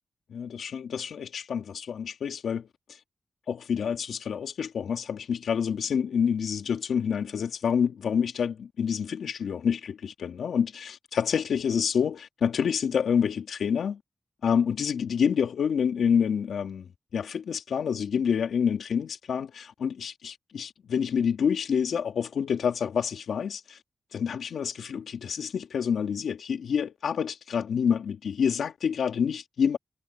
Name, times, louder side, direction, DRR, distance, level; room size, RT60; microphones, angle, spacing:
voice 1, 0.3-3.0 3.5-14.0 14.4-23.8 24.1-29.8, left 7 dB, 85° left, 3.1 m, -28 dB
cardioid pair, 50°, 0 cm